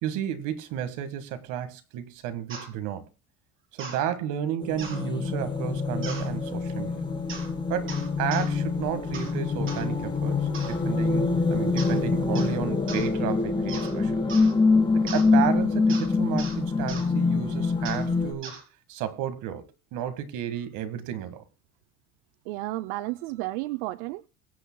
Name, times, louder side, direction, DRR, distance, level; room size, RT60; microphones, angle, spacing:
voice 1, 0.0-3.1 3.7-7.0 7.7-14.2 14.9-18.5 18.9-19.7 19.9-21.4, right 10 dB, 70° right, 1.7 m, -32 dB
sound 1, 2.5-2.7 3.8-4.0 4.8-5.0 6.0-6.3 7.3-7.5 7.9-8.5 9.1-9.3 9.7-9.9 10.5-10.8 11.8-12.0 12.3-12.6 12.9-13.1 13.7-13.9 14.3-14.5 15.1-15.3 15.9-16.1 16.4-16.6 16.9-17.1 17.8-18.1 18.4-18.6, right 4 dB, 40° right, 4.3 m, -39 dB
sound 2, 4.6-18.3, left 4 dB, 15° left, 4.1 m, -25 dB
voice 2, 22.5-24.3, right 18 dB, 85° right, 0.6 m, -32 dB
23.0 x 8.5 x 2.3 m
supercardioid pair, 110°, 32 cm